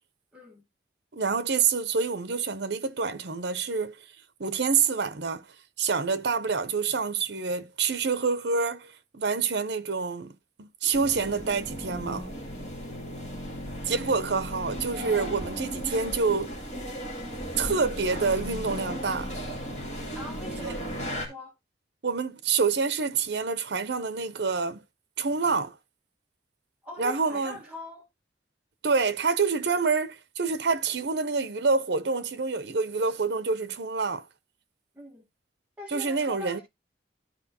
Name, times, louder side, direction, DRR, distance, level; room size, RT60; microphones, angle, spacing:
voice 1, 0.3-0.6 12.9-13.6 20.1-21.5 26.8-28.0 34.9-35.3 35.8-36.6, left 2 dB, 10° right, 1.5 m, -43 dB
voice 2, 1.1-3.9 4.4-5.4 5.8-10.3 10.6-12.3 13.9-16.6 17.6-19.3 20.6-20.7 22.0-24.8 25.2-25.8 27.0-27.6 28.8-34.2 35.9-36.6, right 5 dB, 70° right, 0.7 m, -27 dB
sound 1, 10.9-21.3, equal, 40° left, 2.6 m, -36 dB
13.0 x 4.6 x 2.9 m
head